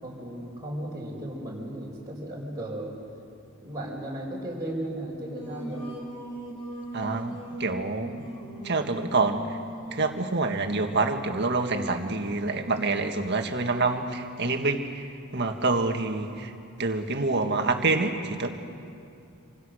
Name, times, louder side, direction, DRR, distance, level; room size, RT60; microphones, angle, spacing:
voice 1, 0.0-3.0 3.5-5.9, right 1 dB, 15° right, -6 dB, 4.8 m, -35 dB
Singing, 5.1-10.0, right 1 dB, 25° left, 3.3 m, -39 dB
voice 2, 6.9-8.4 8.6-9.6 9.9-16.5 16.8-18.5, right 3 dB, 50° right, 5 dB, 1.8 m, -27 dB
26.5 x 26.5 x 6.5 m, 2.6 s
head